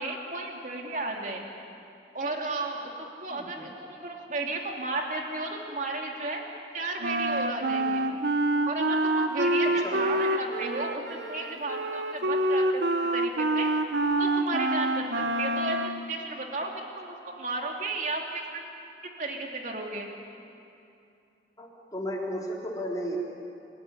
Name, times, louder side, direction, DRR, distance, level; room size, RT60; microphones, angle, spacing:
voice 1, 0.0-1.5 2.1-6.4 6.7-8.1 8.6-12.8 13.1-13.7 14.2-18.6 19.2-20.1, right 2 dB, 45° right, 1 dB, 3.0 m, -34 dB
voice 2, 3.3-3.7 9.6-10.0 15.2-15.3 21.6-23.2, equal, 20° left, -3 dB, 4.0 m, -35 dB
Wind instrument woodwind instrument, 7.0-16.0, right 1 dB, 85° right, 1.1 m, -27 dB
28.0 x 15.5 x 10.0 m, 2.6 s
head